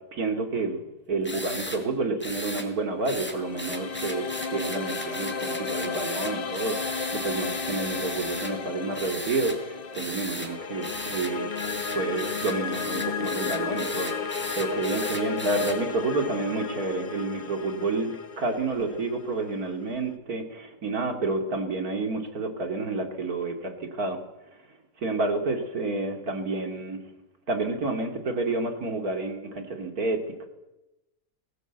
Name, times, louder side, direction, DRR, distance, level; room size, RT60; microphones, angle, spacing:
voice 1, 0.1-11.5 11.9-24.2 25.0-27.0 27.5-30.5, right 3 dB, 65° right, 6 dB, 3.0 m, -29 dB
sound 1, 1.2-1.8 2.2-2.7 3.1-8.5 8.9-9.6 9.9-10.5 10.8-15.8, left 1 dB, 5° left, 3.0 m, -36 dB
sound 2, 2.9-20.0, left 6 dB, 40° left, 1.1 m, -34 dB
20.0 x 18.0 x 8.1 m, 0.98 s
omnidirectional pair, 1.7 m